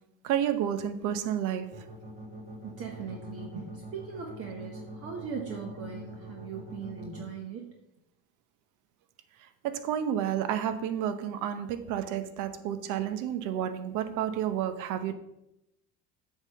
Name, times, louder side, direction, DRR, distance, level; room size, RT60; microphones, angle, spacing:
voice 1, 0.2-1.8 9.6-15.1, right 10 dB, 60° right, 10 dB, 0.9 m, -30 dB
sound 1, 1.7-7.2, right 1 dB, 25° right, 2.9 m, -43 dB
voice 2, 2.6-7.7, right 6 dB, 40° right, 1 dB, 1.2 m, -39 dB
8.0 x 3.8 x 6.8 m, 0.86 s
supercardioid pair, 120°, 35 cm